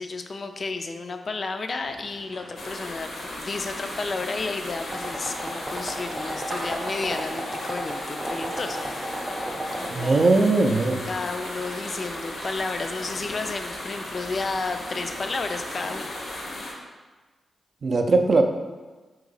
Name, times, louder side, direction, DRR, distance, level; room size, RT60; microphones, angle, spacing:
voice 1, 0.0-3.1 3.4-9.3 9.7-10.4 11.1-16.2, left 3 dB, 55° left, 6 dB, 0.3 m, -32 dB
sound 1, 1.7-16.6, right 1 dB, 85° right, 0.7 m, -44 dB
sound 2, 2.6-16.7, left 1 dB, 85° left, 0.8 m, -36 dB
sound 3, 4.9-9.9, right 1 dB, 15° right, 0.6 m, -34 dB
voice 2, 9.9-11.0 17.8-18.4, right 3 dB, 60° right, 4 dB, 0.4 m, -20 dB
2.9 x 2.7 x 3.9 m, 1.3 s
cardioid pair, 50°, 0 cm